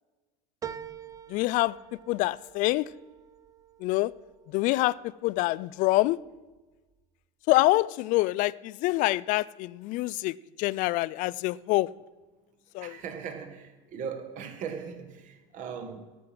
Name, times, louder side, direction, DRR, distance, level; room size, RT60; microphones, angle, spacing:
sound 1, 0.6-5.4 5.9-6.6 6.9-7.0, right 8 dB, 20° right, 0.5 m, -46 dB
voice 1, 1.3-1.7 2.1-2.9 3.8-4.1 4.5-4.9 5.2-6.2 7.5-10.3 10.6-11.9 12.7-12.9, left 19 dB, 50° left, 0.4 m, -25 dB
voice 2, 12.8-16.0, right 6 dB, 50° right, 1.7 m, -39 dB
12.5 x 6.0 x 7.7 m
supercardioid pair, 115°, 17 cm